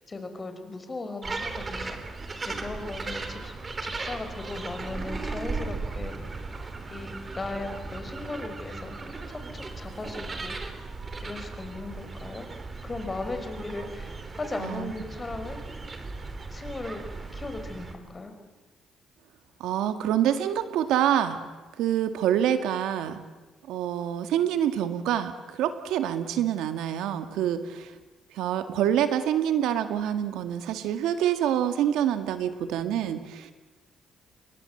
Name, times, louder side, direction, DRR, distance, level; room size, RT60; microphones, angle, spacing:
voice 1, 0.1-3.5 3.8-6.3 6.9-8.9 9.3-10.8 11.2-12.5 12.8-15.6 16.5-17.0 17.3-18.3, left 3 dB, 25° left, 7 dB, 4.8 m, -37 dB
sound 1, 1.2-17.9, right 3 dB, 30° right, 3.5 m, -37 dB
voice 2, 14.6-14.9 19.6-21.4 21.8-23.2 23.7-27.9 28.3-33.5, right 10 dB, 90° right, 9 dB, 2.0 m, -26 dB
28.5 x 23.5 x 7.9 m, 1.2 s
cardioid pair, 105°, 0 cm